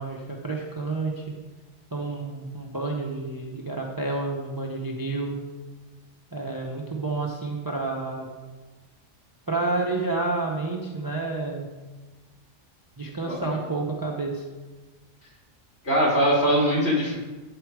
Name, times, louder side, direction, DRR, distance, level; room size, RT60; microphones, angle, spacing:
voice 1, 0.0-1.3 1.9-5.4 6.3-8.3 9.5-11.7 13.0-14.5, right 3 dB, 20° right, -1 dB, 0.6 m, -29 dB
voice 2, 15.8-17.2, equal, 55° left, -4 dB, 3.0 m, -22 dB
8.8 x 5.0 x 4.7 m, 1.2 s
omnidirectional pair, 1.3 m